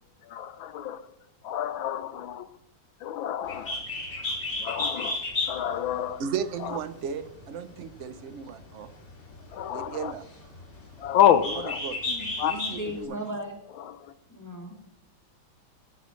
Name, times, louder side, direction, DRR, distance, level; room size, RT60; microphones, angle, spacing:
voice 1, 0.3-1.0 1.4-2.5 3.0-3.8 4.6-5.2 5.5-6.2 9.5-10.1 11.0-11.8 12.4-12.5, left 10 dB, 75° left, 12 dB, 1.4 m, -27 dB
Bird, 3.4-13.0, left 2 dB, 35° left, 2.7 m, -35 dB
voice 2, 6.2-8.9 9.7-10.5 11.5-12.1 12.4-13.2, right 7 dB, 70° right, 11 dB, 0.7 m, -36 dB
voice 3, 12.1-13.5 14.3-14.8, equal, 10° left, -1 dB, 2.8 m, -37 dB
15.5 x 15.5 x 3.1 m, 0.79 s
omnidirectional pair, 2.2 m